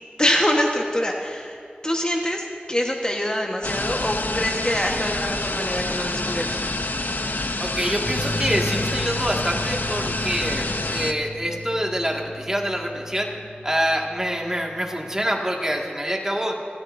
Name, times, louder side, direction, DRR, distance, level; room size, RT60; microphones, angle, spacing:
voice 1, 0.2-6.6, equal, 25° left, 0 dB, 1.3 m, -25 dB
sound 1, 3.6-11.1, left 2 dB, 65° left, 0.7 m, -27 dB
voice 2, 7.6-13.3 13.6-16.6, equal, 15° right, -1 dB, 2.0 m, -26 dB
sound 2, 8.0-15.3, left 2 dB, 85° left, 2.5 m, -35 dB
29.0 x 13.5 x 2.7 m, 2.3 s
wide cardioid pair, 45°, 3 cm